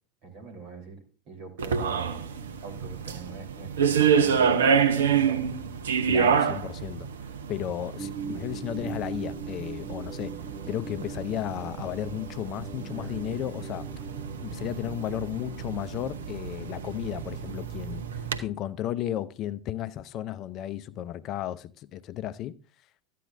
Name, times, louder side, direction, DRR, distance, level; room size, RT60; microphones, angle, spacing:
voice 1, 0.2-1.0 1.3-2.2 2.6-5.5, right 4 dB, 55° right, 3.7 m, -43 dB
sound 1, 1.6-18.4, right 7 dB, 75° right, 0.8 m, -28 dB
voice 2, 6.1-7.1 7.5-10.3 10.7-13.9 14.4-18.1 18.4-22.5, left 12 dB, 45° left, 0.5 m, -34 dB
sound 2, 8.0-18.6, right 5 dB, 10° right, 0.9 m, -42 dB
13.0 x 9.3 x 2.6 m
figure-of-eight pair, 80°, 0 cm